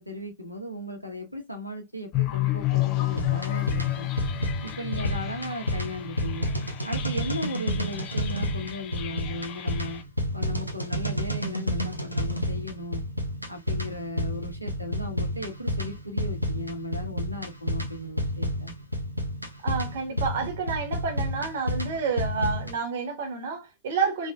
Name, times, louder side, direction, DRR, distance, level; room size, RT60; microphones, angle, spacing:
voice 1, 0.0-4.1 4.6-6.5 6.8-10.0 10.3-13.0 13.5-18.7, equal, 90° right, 1.1 m, -36 dB
sound 1, 2.1-10.0, left 17 dB, 40° left, 0.8 m, -31 dB
sound 2, 3.1-22.8, equal, 90° left, 0.9 m, -30 dB
voice 2, 19.6-24.3, right 5 dB, 60° right, 1.3 m, -29 dB
3.7 x 3.3 x 3.6 m
figure-of-eight pair, 90°, 0 cm